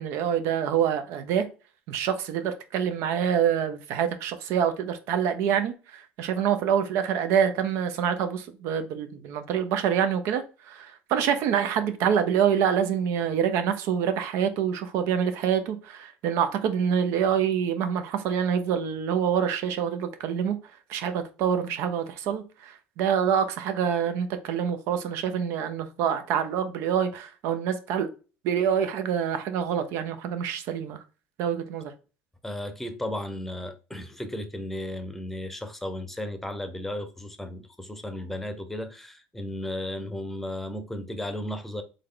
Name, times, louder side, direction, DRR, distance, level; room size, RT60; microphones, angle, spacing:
voice 1, 0.0-1.5 1.9-20.6 20.9-28.1 28.4-31.0 31.4-31.9, right 8 dB, 65° right, 0.7 m, -26 dB
voice 2, 32.4-41.8, left 1 dB, 5° left, 0.8 m, -34 dB
3.7 x 3.4 x 3.7 m
supercardioid pair, 115°, 5 cm